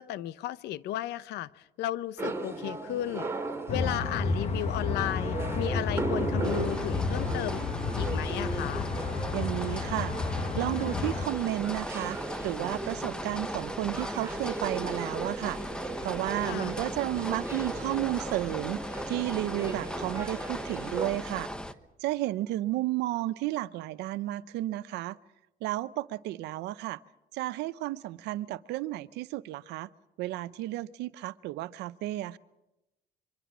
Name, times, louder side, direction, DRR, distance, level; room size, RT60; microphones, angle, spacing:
voice 1, 0.0-3.3 3.7-8.9 16.4-16.8, left 13 dB, 80° left, 0.8 m, -34 dB
sound 1, 2.2-21.1, right 3 dB, 15° right, 3.6 m, -37 dB
sound 2, 3.7-11.3, left 4 dB, 40° left, 1.5 m, -31 dB
sound 3, 6.4-21.7, left 1 dB, 5° left, 1.2 m, -38 dB
voice 2, 9.3-12.2 12.4-15.6 16.0-21.5 22.0-25.2 25.6-27.0 27.3-29.9 30.2-32.4, right 16 dB, 85° right, 0.8 m, -32 dB
26.0 x 24.0 x 6.1 m
cardioid pair, 110°, 17 cm